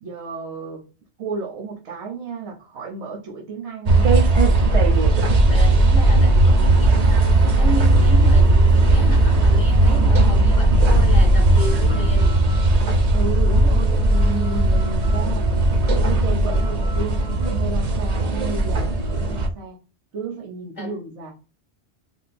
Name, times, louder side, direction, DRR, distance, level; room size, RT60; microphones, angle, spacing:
voice 1, 0.0-0.8 1.2-4.2 13.1-15.5 16.0-19.8 20.1-21.3, right 4 dB, 75° right, 1.0 m, -32 dB
sound 1, 3.9-19.5, right 2 dB, 50° right, 0.5 m, -17 dB
voice 2, 5.5-12.4 16.3-16.7 19.1-19.5 20.8-21.0, left 3 dB, 50° left, 0.6 m, -33 dB
3.7 x 2.4 x 2.5 m
omnidirectional pair, 1.1 m